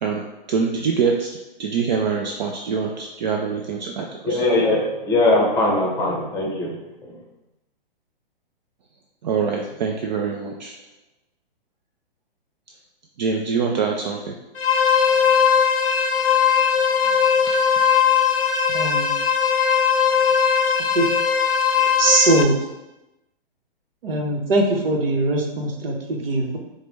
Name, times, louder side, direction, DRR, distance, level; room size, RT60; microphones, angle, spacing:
voice 1, 0.0-4.4 9.2-10.7 13.2-14.4 17.0-17.2 17.5-17.6, right 5 dB, 50° right, 2 dB, 0.4 m, -25 dB
voice 2, 4.3-6.7 7.0-7.1, left 2 dB, 10° left, -2 dB, 0.8 m, -20 dB
sound 1, 14.6-22.4, left 7 dB, 90° left, 0.6 m, -19 dB
voice 3, 18.7-19.1 20.9-21.1 22.0-22.6 24.0-26.6, right 2 dB, 70° right, 1 dB, 0.9 m, -21 dB
4.8 x 2.2 x 3.2 m, 0.98 s
hypercardioid pair, 125°, 29 cm